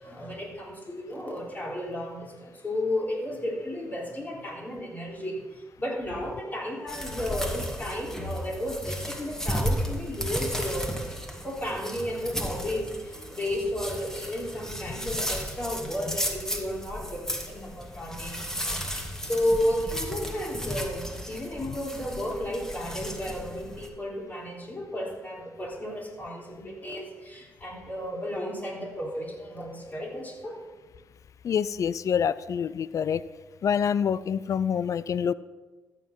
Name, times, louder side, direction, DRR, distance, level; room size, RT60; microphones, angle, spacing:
voice 1, 0.0-11.0 11.4-30.6, left 1 dB, 25° left, -1 dB, 3.9 m, -33 dB
sound 1, 6.9-23.9, equal, 10° left, 2.0 m, -34 dB
voice 2, 31.4-33.2 33.6-35.3, left 7 dB, 55° left, 18 dB, 0.4 m, -26 dB
13.5 x 7.6 x 5.6 m, 1.3 s
supercardioid pair, 65°, 6 cm